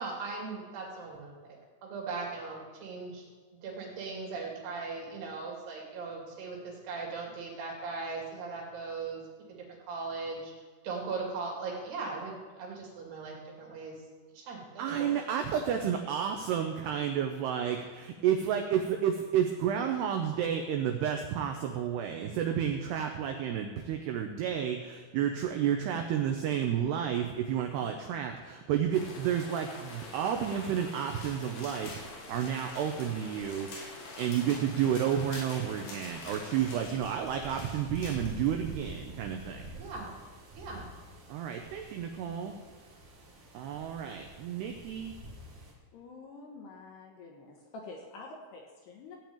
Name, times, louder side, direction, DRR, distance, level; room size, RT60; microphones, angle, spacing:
voice 1, 0.0-3.2 3.6-9.2 9.6-10.5 10.8-13.9 14.3-15.1 39.7-40.1 40.5-40.9, right 4 dB, 55° right, -2 dB, 4.4 m, -39 dB
voice 2, 14.8-33.7 34.2-39.7 41.3-42.5 43.5-45.1, right 9 dB, 80° right, 4 dB, 2.4 m, -31 dB
sound 1, 28.9-36.8, left 2 dB, 50° left, 3.6 m, -46 dB
sound 2, 31.1-38.5, left 2 dB, 90° left, 5.8 m, -48 dB
sound 3, 36.6-45.7, right 1 dB, 40° right, 2.6 m, -47 dB
voice 3, 45.9-49.2, left 3 dB, 65° left, 0 dB, 2.9 m, -47 dB
16.5 x 5.9 x 8.9 m, 1.5 s
omnidirectional pair, 5.9 m